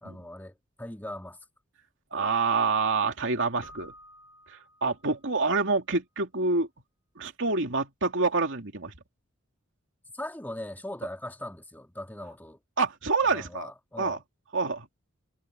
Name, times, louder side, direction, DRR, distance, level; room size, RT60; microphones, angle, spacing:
voice 1, 0.0-1.4 10.1-12.6 13.3-14.2, left 1 dB, 10° left, 2.3 m, -40 dB
voice 2, 2.1-3.9 4.8-6.7 7.2-8.9 12.8-13.7 14.0-14.2 14.5-14.9, right 4 dB, 65° right, 2.9 m, -27 dB
Keyboard (musical), 3.6-5.4, equal, 65° left, 6.1 m, -52 dB
head